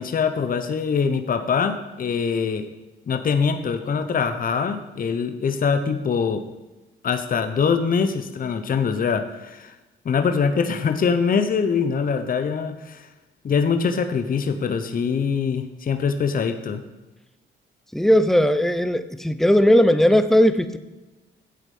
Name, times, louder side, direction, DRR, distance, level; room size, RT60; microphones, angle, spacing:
voice 1, 0.0-2.7 3.1-6.4 7.0-9.7 10.0-13.1 13.4-16.8, left 6 dB, 45° left, 8 dB, 1.1 m, -23 dB
voice 2, 17.9-20.8, equal, ahead, 11 dB, 0.8 m, -17 dB
12.0 x 8.2 x 5.5 m, 1.1 s
cardioid pair, 90°, 20 cm